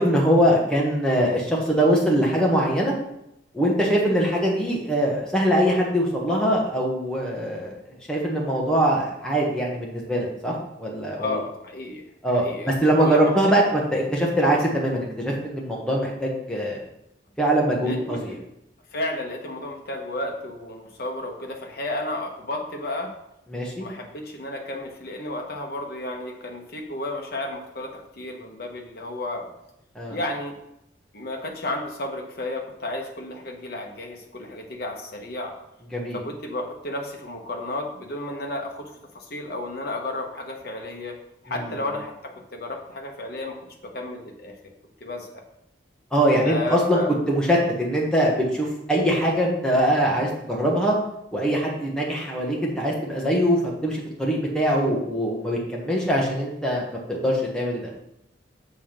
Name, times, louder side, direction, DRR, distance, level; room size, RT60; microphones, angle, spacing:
voice 1, 0.0-2.9 3.5-11.4 12.2-16.8 17.4-18.4 23.5-23.9 29.9-30.2 35.9-36.2 41.5-41.7 46.1-47.0 47.3-51.0 51.3-57.9, equal, 5° left, -3 dB, 1.3 m, -22 dB
voice 2, 11.2-12.0 12.3-12.7 13.0-13.6 17.8-18.2 18.9-23.1 23.8-29.5 30.1-30.5 31.1-35.6 36.1-41.2 41.4-43.6 43.8-44.5 45.0-45.4 46.4-47.1, left 2 dB, 50° left, 2 dB, 1.1 m, -32 dB
7.0 x 3.6 x 6.0 m, 0.82 s
head